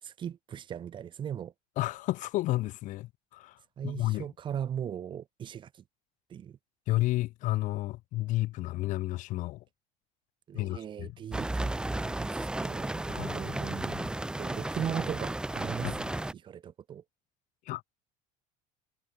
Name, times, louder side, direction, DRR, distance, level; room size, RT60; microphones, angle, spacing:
voice 1, 0.0-1.5 3.8-5.8 6.3-6.6 10.5-14.0 14.4-16.0 16.3-17.0, right 9 dB, 25° right, 4.1 m, -38 dB
voice 2, 1.8-4.3 6.9-9.6 10.5-11.2 13.1-14.1 15.8-16.0 17.7-17.8, left 17 dB, 45° left, 1.8 m, -32 dB
sound 1, 11.3-16.3, right 2 dB, 5° right, 1.2 m, -33 dB
cardioid pair, 170°, 18 cm